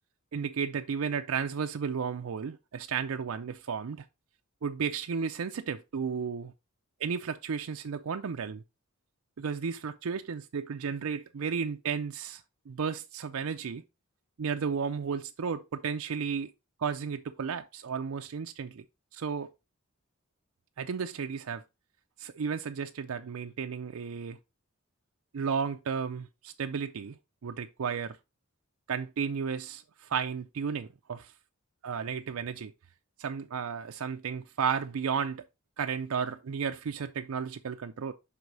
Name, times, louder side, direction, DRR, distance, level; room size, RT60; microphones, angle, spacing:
voice 1, 0.3-4.1 4.6-6.5 7.0-8.6 9.4-13.8 14.4-16.5 16.8-18.8 19.1-19.5 20.8-21.6 22.2-24.4 25.3-27.2 27.4-28.2 28.9-31.3 31.8-32.7 33.2-35.4 35.8-38.1, right 6 dB, 85° right, 0.5 m, -33 dB
5.6 x 4.7 x 3.9 m
head